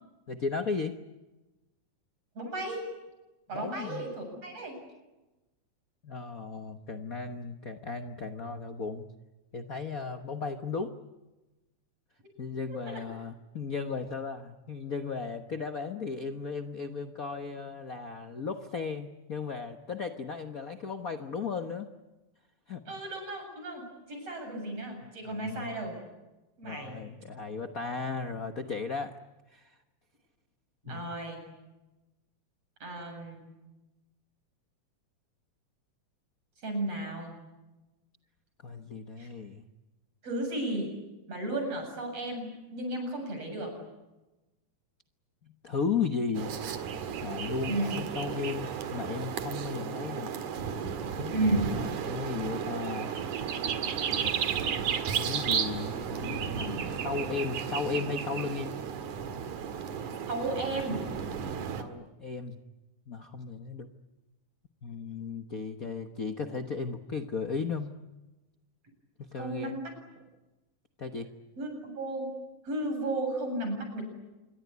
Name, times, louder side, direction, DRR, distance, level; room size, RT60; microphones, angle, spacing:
voice 1, 0.3-1.0 3.5-4.1 6.0-9.1 9.5-10.9 12.4-21.9 22.7-22.8 25.3-25.8 26.6-29.2 29.5-29.8 30.9-31.0 38.6-39.6 45.4-46.5 47.2-50.3 51.2-51.3 51.7-53.1 55.1-58.7 61.8-62.6 63.1-63.9 64.8-67.9 69.2-69.8 71.0-71.3, left 5 dB, 75° left, 7 dB, 0.7 m, -35 dB
voice 2, 2.4-2.9 3.5-4.8 12.7-13.0 22.9-26.0 26.6-27.0 30.8-31.4 32.8-33.4 36.6-37.4 39.2-39.3 40.2-40.9 41.3-43.7 47.7-48.0 51.3-51.8 60.3-61.0 69.4-69.9 71.6-72.4 72.6-74.0, right 1 dB, 50° right, 4 dB, 8.8 m, -34 dB
sound 1, 46.3-61.8, right 7 dB, 70° right, 3.2 m, -33 dB
27.0 x 23.0 x 9.5 m, 1.1 s
omnidirectional pair, 3.6 m